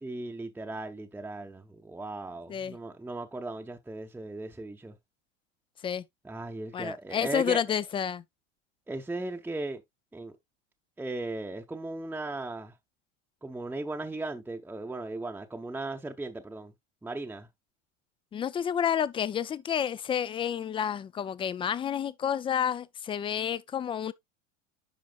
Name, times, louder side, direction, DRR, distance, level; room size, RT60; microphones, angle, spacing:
voice 1, 0.0-5.0 6.2-7.6 8.9-9.8 10.1-10.3 11.0-12.7 13.4-16.7 17.0-17.5, right 2 dB, 5° right, 0.8 m, -37 dB
voice 2, 6.7-8.2 18.3-24.1, left 8 dB, 15° left, 0.3 m, -30 dB
10.5 x 5.1 x 2.4 m
hypercardioid pair, 90°, 37 cm